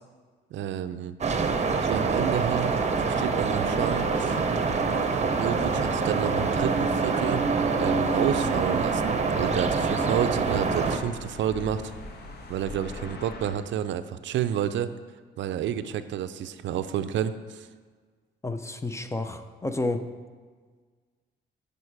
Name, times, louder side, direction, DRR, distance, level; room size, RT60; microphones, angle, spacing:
voice 1, 0.5-1.1 1.8-4.4 5.4-7.4 7.8-11.9 12.5-14.9 15.4-17.7, right 10 dB, 70° right, 12 dB, 0.4 m, -30 dB
sound 1, 1.2-11.0, right 4 dB, 35° right, 0.7 m, -25 dB
sound 2, 3.6-13.6, left 2 dB, 55° left, 1.2 m, -42 dB
voice 2, 18.4-20.0, left 2 dB, 15° left, 8 dB, 0.5 m, -30 dB
8.5 x 5.2 x 4.7 m, 1.5 s
cardioid pair, 90°, 20 cm